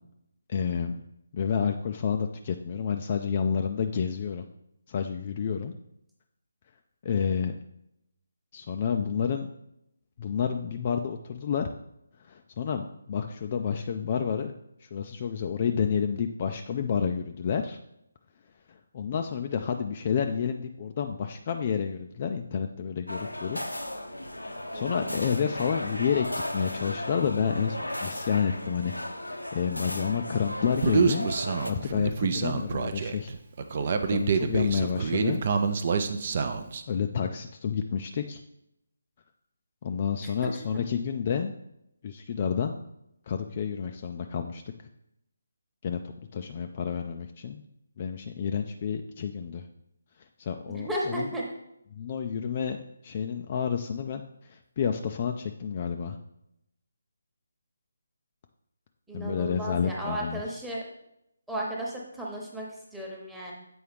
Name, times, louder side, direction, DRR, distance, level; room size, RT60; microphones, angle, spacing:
voice 1, 0.5-1.0 1.3-4.5 4.9-5.7 7.0-7.6 8.5-9.5 10.2-11.7 12.2-14.5 14.8-17.8 18.7-23.6 24.4-26.3 26.5-28.9 29.2-31.3 31.7-33.3 33.8-35.4 36.9-38.4 39.8-41.5 42.0-42.8 43.3-44.6 45.8-47.6 48.0-49.7 50.2-51.3 51.9-52.8 53.0-56.2 59.1-60.4, left 7 dB, 35° left, 5 dB, 0.3 m, -30 dB
sound 1, 23.1-31.7, left 1 dB, 85° left, 0.7 m, -35 dB
voice 2, 24.7-25.1 50.7-51.4 59.1-60.8 61.5-63.5, right 1 dB, 5° right, -4 dB, 1.1 m, -34 dB
Human voice, 30.8-36.8, right 5 dB, 40° right, 0.5 m, -27 dB
7.9 x 4.6 x 3.3 m, 0.81 s
figure-of-eight pair, 150°, 0 cm